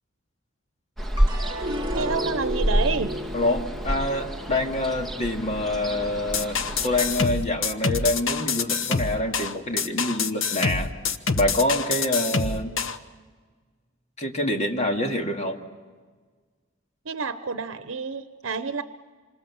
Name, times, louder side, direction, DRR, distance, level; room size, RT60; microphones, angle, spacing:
Ocean, 1.0-7.3, equal, ahead, 1.5 m, -29 dB
sound 1, 1.2-7.6 8.0-8.7, equal, 25° right, 2.3 m, -35 dB
voice 1, 1.9-3.1 17.0-18.8, right 4 dB, 90° right, 10 dB, 0.8 m, -29 dB
voice 2, 3.3-6.6 6.8-10.9 11.4-12.7 14.2-15.6, left 1 dB, 35° left, 3 dB, 2.4 m, -26 dB
sound 2, 6.3-13.0, left 5 dB, 75° left, 1.1 m, -26 dB
27.0 x 26.0 x 7.1 m, 1.5 s
head